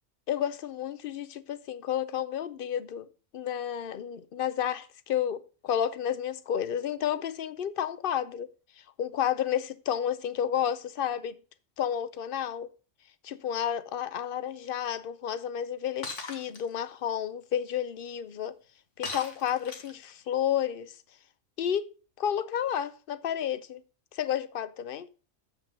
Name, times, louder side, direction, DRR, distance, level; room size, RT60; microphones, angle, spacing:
voice 1, 0.3-3.1 3.3-8.5 9.0-11.4 11.8-12.7 13.2-18.5 19.0-21.0 21.6-21.9 22.2-23.8 24.1-25.1, left 9 dB, 55° left, 0.7 m, -31 dB
Shatter, 16.0-16.6 19.0-20.1, left 3 dB, 85° left, 1.9 m, -38 dB
7.4 x 6.0 x 5.2 m
omnidirectional pair, 1.2 m